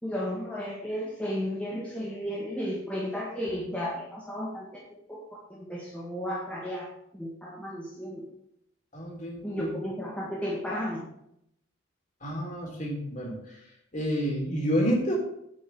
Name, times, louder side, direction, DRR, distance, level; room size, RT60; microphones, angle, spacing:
voice 1, 0.0-4.8 5.1-6.9 7.1-8.2 9.4-11.1, equal, 5° left, -5 dB, 1.7 m, -34 dB
voice 2, 8.9-9.7 12.2-13.6 13.9-15.1, equal, 40° left, -2 dB, 3.7 m, -29 dB
8.9 x 5.4 x 8.0 m, 0.77 s
head